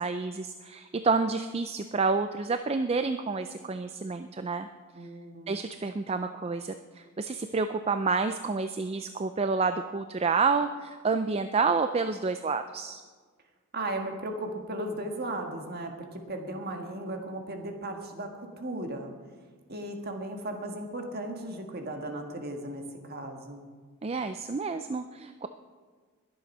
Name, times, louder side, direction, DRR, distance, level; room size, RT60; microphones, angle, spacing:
voice 1, 0.0-4.7 5.5-13.0 24.0-25.5, right 4 dB, 30° right, 9 dB, 0.4 m, -29 dB
voice 2, 4.9-5.6 13.7-19.1 19.7-23.7, right 1 dB, 45° right, 4 dB, 1.6 m, -36 dB
21.0 x 7.8 x 5.4 m, 1.5 s
head